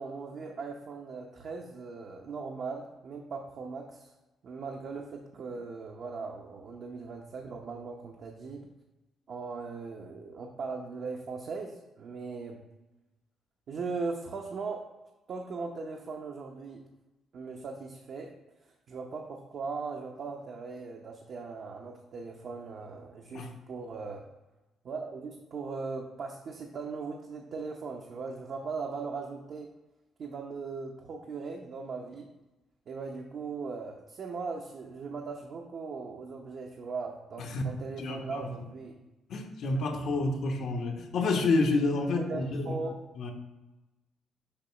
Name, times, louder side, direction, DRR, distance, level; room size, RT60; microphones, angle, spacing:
voice 1, 0.0-4.1 4.4-8.7 9.3-12.6 13.7-14.9 15.3-16.8 17.3-18.3 18.9-24.2 24.8-29.7 30.2-32.3 32.9-38.9 39.6-39.7 42.2-42.9, right 4 dB, 60° right, 1 dB, 0.8 m, -39 dB
voice 2, 38.0-38.5 39.3-42.8 43.2-43.3, left 3 dB, 70° left, 3 dB, 1.0 m, -29 dB
6.7 x 3.0 x 5.7 m, 1.0 s
cardioid pair, 90°, 0 cm